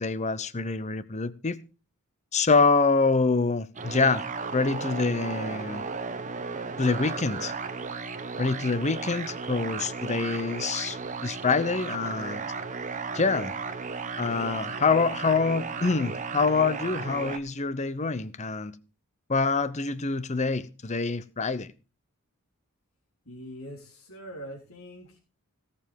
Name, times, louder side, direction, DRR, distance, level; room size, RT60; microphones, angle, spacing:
voice 1, 0.0-1.6 2.3-4.2 4.5-5.8 6.8-7.5 8.4-12.4 13.1-13.5 14.2-18.7 19.3-21.7, left 4 dB, 30° left, 0.8 m, -26 dB
sound 1, 3.8-17.4, right 4 dB, 35° right, 1.0 m, -35 dB
voice 2, 23.3-25.2, equal, 75° left, 3.5 m, -43 dB
17.0 x 7.0 x 5.2 m
head